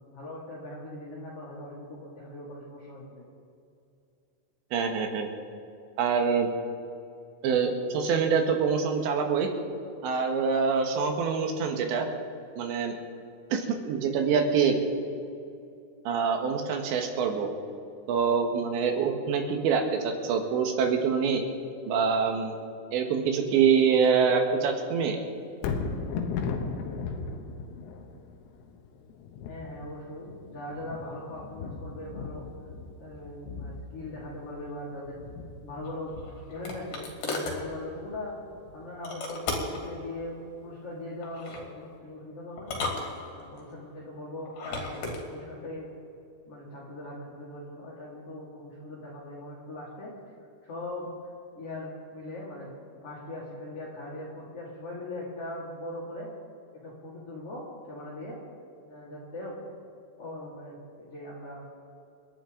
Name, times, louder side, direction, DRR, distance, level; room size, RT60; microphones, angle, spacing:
voice 1, 0.0-3.2 29.5-32.5 33.0-35.2 35.6-38.4 38.7-42.8 43.3-45.9 46.5-50.1 50.6-51.1 51.5-52.7 53.0-56.3 56.7-58.4 58.9-59.7 60.2-61.6, left 1 dB, 40° left, -8 dB, 2.6 m, -40 dB
voice 2, 4.7-5.3 6.0-6.5 7.4-9.5 10.0-12.1 12.6-13.0 13.5-14.8 16.1-17.5 18.1-21.4 21.9-22.6 22.9-25.2, right 6 dB, 70° right, 4 dB, 3.5 m, -25 dB
Thunder, 25.5-39.7 40.2-40.3, left 5 dB, 85° left, 3.8 m, -38 dB
sound 1, 35.8-37.6 39.0-39.9 41.2-41.7 42.6-43.6 44.5-45.2, left 3 dB, 55° left, 4.0 m, -34 dB
29.5 x 11.0 x 3.9 m, 2.6 s
omnidirectional pair, 5.7 m